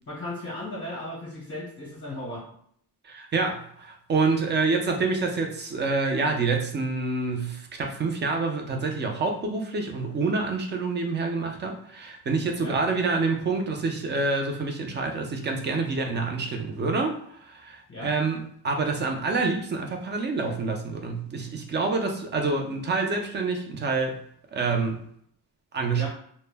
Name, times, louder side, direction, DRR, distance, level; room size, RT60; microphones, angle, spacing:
voice 1, 0.1-2.4 12.6-12.8 17.9-18.1 25.9-26.1, left 1 dB, 30° left, -5 dB, 0.7 m, -36 dB
voice 2, 3.0-24.2 24.5-25.0 25.7-26.1, right 3 dB, 30° right, 3 dB, 0.4 m, -27 dB
2.1 x 2.0 x 3.2 m, 0.65 s
wide cardioid pair, 125°, 40 cm